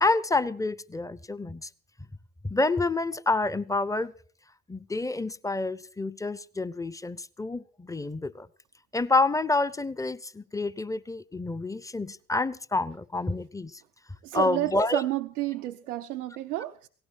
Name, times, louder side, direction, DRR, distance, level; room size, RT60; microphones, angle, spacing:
voice 1, 0.0-1.7 2.4-4.1 4.7-8.5 8.9-13.8 14.3-15.0, left 2 dB, 10° left, 0.7 m, -28 dB
voice 2, 14.2-16.9, right 15 dB, 85° right, 0.7 m, -31 dB
17.5 x 16.0 x 4.7 m
hypercardioid pair, 65°, 44 cm